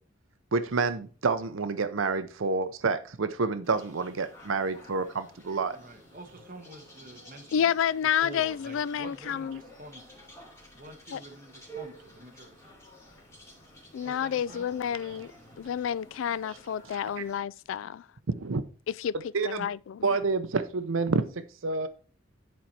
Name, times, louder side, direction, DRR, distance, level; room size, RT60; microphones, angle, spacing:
voice 1, 0.5-5.8 16.9-17.2 18.3-18.6 19.3-19.7 20.0-21.2 21.6-21.9, right 4 dB, 85° right, 0.7 m, -28 dB
sound 1, 3.6-17.4, right 1 dB, 15° left, 2.6 m, -51 dB
voice 2, 5.7-7.7 8.2-10.3 10.7-12.6 14.0-14.7, right 2 dB, 45° right, 1.3 m, -47 dB
voice 3, 7.5-9.6 11.1-11.2 13.9-15.3 15.6-18.0 18.9-19.1 19.4-20.1, left 8 dB, 75° left, 0.3 m, -29 dB
10.5 x 4.6 x 4.2 m
head